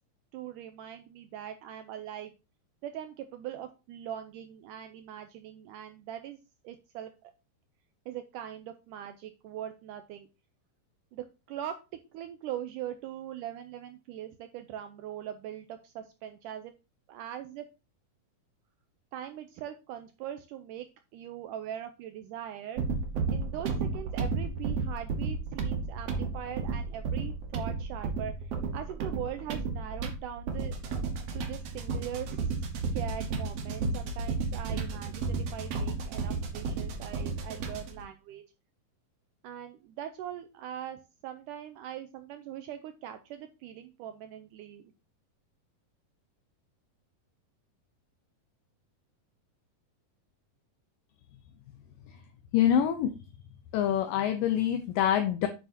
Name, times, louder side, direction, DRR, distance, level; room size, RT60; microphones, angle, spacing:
voice 1, 0.3-2.3 2.8-6.4 6.6-7.3 8.1-10.3 11.1-11.8 12.1-16.7 17.1-17.7 19.1-20.9 21.1-22.8 23.3-30.7 31.3-32.5 32.9-38.4 39.4-44.8, right 10 dB, 85° right, 8 dB, 1.9 m, -41 dB
sound 1, 22.8-38.0, right 4 dB, 60° right, 1.7 m, -33 dB
voice 2, 52.5-53.1 53.7-55.5, left 10 dB, 75° left, 7 dB, 2.2 m, -25 dB
9.0 x 7.1 x 2.7 m, 0.29 s
omnidirectional pair, 4.2 m